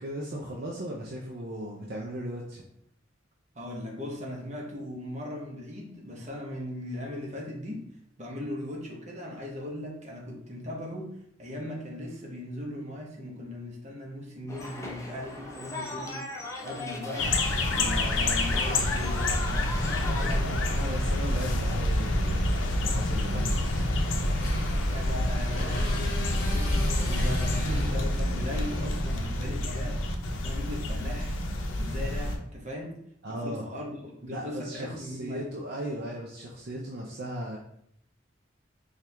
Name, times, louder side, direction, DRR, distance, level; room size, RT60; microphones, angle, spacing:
voice 1, 0.0-2.6 18.0-18.4 18.7-19.0 20.7-24.1 27.1-28.0 33.2-33.6 34.3-37.6, right 1 dB, 55° right, -2 dB, 0.5 m, -37 dB
voice 2, 3.5-7.9 8.2-11.1 11.4-17.4 17.7-19.6 19.9-20.8 24.8-30.0 30.4-31.4 31.8-33.0 33.3-35.5, left 1 dB, 40° right, -1 dB, 0.9 m, -38 dB
sound 1, 14.5-20.4, left 2 dB, 15° left, 0.5 m, -38 dB
sound 2, 17.2-32.4, left 1 dB, 85° left, 0.6 m, -27 dB
Motorcycle, 22.9-29.6, left 2 dB, 50° left, 0.9 m, -42 dB
4.4 x 2.4 x 3.2 m, 0.72 s
head